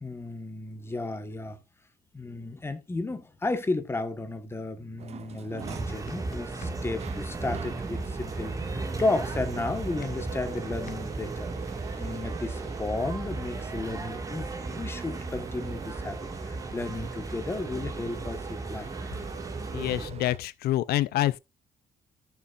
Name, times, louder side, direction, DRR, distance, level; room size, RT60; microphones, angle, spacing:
voice 1, 0.0-1.6 2.1-11.5 12.0-18.9, left 2 dB, 15° left, 1.3 m, -33 dB
sound 1, 5.0-20.4, right 9 dB, 45° right, 0.4 m, -44 dB
sound 2, 5.6-20.1, right 3 dB, 20° right, 1.9 m, -35 dB
sound 3, 6.1-6.8 10.0-11.0, left 9 dB, 60° left, 1.2 m, -50 dB
voice 2, 19.7-21.4, left 14 dB, 85° left, 0.4 m, -27 dB
14.0 x 7.0 x 2.5 m
cardioid pair, 145°, 16 cm